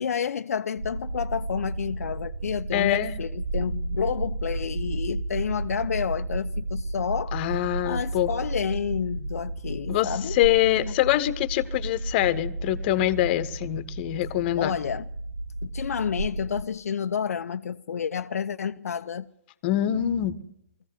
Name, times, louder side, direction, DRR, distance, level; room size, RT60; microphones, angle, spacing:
voice 1, 0.0-7.3 7.8-10.4 10.9-11.0 14.6-15.1 15.6-19.3, left 7 dB, 70° left, 0.9 m, -30 dB
sound 1, 0.8-16.6, right 2 dB, 65° right, 1.1 m, -33 dB
voice 2, 2.7-3.2 7.3-8.3 9.9-14.7 19.6-20.4, left 14 dB, 40° left, 1.4 m, -24 dB
21.0 x 15.5 x 9.4 m
hypercardioid pair, 130°, 8 cm